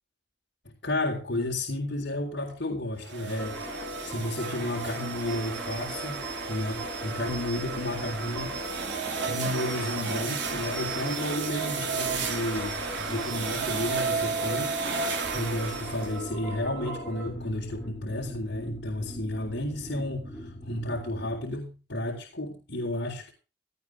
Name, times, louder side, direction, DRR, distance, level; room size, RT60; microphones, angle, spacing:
voice 1, 0.8-8.6 9.3-23.3, left 1 dB, 75° left, -2 dB, 3.9 m, -32 dB
sound 1, 3.0-16.2, right 5 dB, 80° right, 3.2 m, -33 dB
sound 2, 3.4-21.4, equal, ahead, 5.6 m, -38 dB
18.0 x 15.0 x 3.5 m, 0.33 s
head